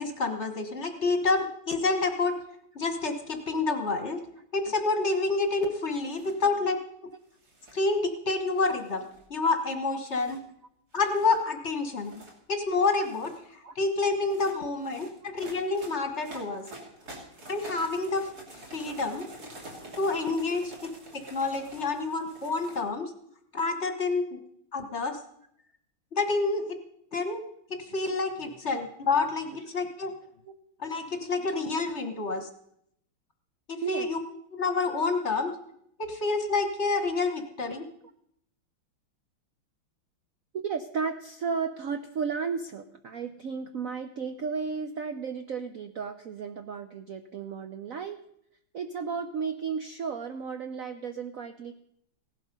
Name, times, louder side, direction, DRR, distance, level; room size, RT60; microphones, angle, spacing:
voice 1, 0.0-2.3 2.7-4.2 4.5-6.8 7.7-9.0 9.3-10.4 10.9-12.1 12.5-16.6 17.5-19.3 20.0-20.7 21.1-23.1 23.5-24.4 24.7-25.2 26.1-26.8 27.1-27.4 27.8-30.1 30.8-32.5 33.7-34.2 34.5-35.5 36.0-37.8, left 3 dB, 40° left, 5 dB, 1.4 m, -28 dB
sound 1, 5.9-6.4 7.3-7.9 8.6-9.3 10.1-10.4 10.9-11.4 11.9-12.4 12.9-13.4 14.1-22.8, right 1 dB, 45° right, 3.4 m, -47 dB
voice 2, 40.5-48.2 48.7-51.7, right 5 dB, 60° right, 8 dB, 0.8 m, -34 dB
17.0 x 12.0 x 5.3 m, 0.72 s
omnidirectional pair, 2.2 m